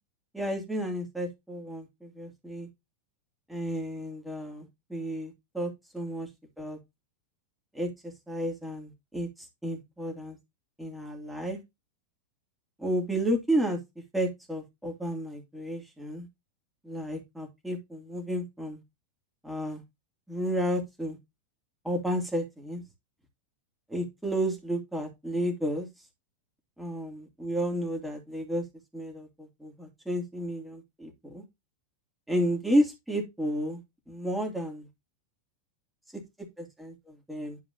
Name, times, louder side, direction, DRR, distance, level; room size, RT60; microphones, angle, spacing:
voice 1, 0.3-2.7 3.5-6.3 6.6-6.8 7.7-9.3 9.6-10.4 10.8-11.6 12.8-13.8 14.1-16.3 16.8-18.8 19.4-19.8 20.3-21.2 21.8-22.8 23.9-25.9 26.8-28.6 28.9-31.4 32.3-33.8 34.1-34.9 36.6-37.6, equal, 5° right, 2.7 m, -32 dB
11.0 x 4.8 x 2.7 m
figure-of-eight pair, 90°, 0 cm